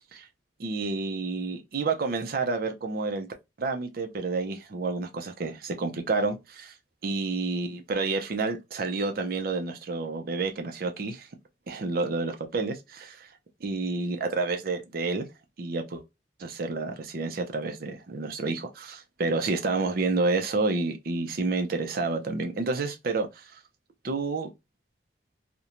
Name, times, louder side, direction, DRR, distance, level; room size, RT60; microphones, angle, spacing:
voice 1, 0.6-3.3 3.6-6.7 7.0-11.3 11.7-13.3 13.6-15.3 15.6-16.0 16.4-23.6 24.0-24.5, right 3 dB, 55° right, 0.5 m, -29 dB
2.5 x 2.1 x 2.8 m
head